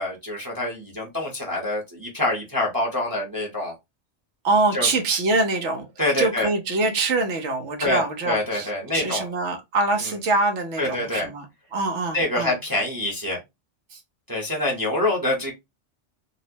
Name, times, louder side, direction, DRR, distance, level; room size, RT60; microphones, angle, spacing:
voice 1, 0.0-3.7 4.7-4.9 6.0-6.5 7.8-9.3 10.8-11.3 12.1-13.4 14.3-15.5, left 2 dB, 20° right, 0.9 m, -26 dB
voice 2, 4.4-5.9 6.2-11.4 11.7-12.5 13.9-14.0, right 3 dB, 75° right, 1.2 m, -24 dB
4.2 x 2.1 x 2.7 m
omnidirectional pair, 1.2 m